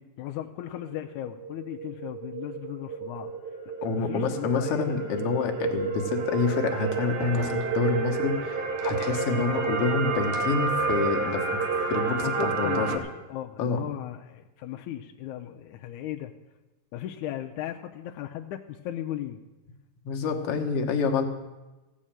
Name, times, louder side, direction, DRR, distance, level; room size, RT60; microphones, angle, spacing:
voice 1, 0.0-3.3 3.9-5.0 12.2-16.3 16.9-19.4, left 12 dB, 85° left, 3 dB, 1.8 m, -36 dB
sound 1, 0.9-13.0, right 4 dB, 85° right, 3.4 m, -30 dB
voice 2, 3.8-11.6 11.9-13.0 13.6-13.8 20.1-21.2, left 4 dB, 60° left, 3 dB, 1.6 m, -27 dB
sound 2, 6.7-9.8 10.0-11.4, right 7 dB, 70° right, 2.0 m, -46 dB
15.5 x 6.4 x 8.8 m, 1.1 s
omnidirectional pair, 4.0 m